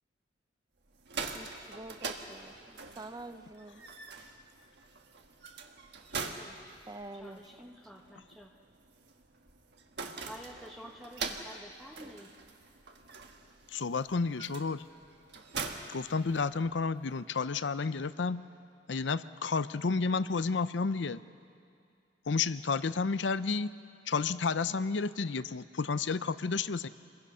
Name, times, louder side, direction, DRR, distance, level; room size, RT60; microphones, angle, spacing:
sound 1, 0.9-16.8, right 4 dB, 65° right, 1.4 m, -44 dB
voice 1, 1.3-3.8 6.9-7.7, right 2 dB, 20° right, 9 dB, 0.7 m, -47 dB
voice 2, 6.1-6.6 7.1-8.5 10.3-12.3, equal, ahead, -1 dB, 1.0 m, -50 dB
voice 3, 13.7-14.8 15.9-18.4 18.9-21.2 22.3-23.7 24.1-26.9, left 4 dB, 75° left, 15 dB, 0.6 m, -31 dB
27.5 x 21.0 x 5.6 m, 2.3 s
head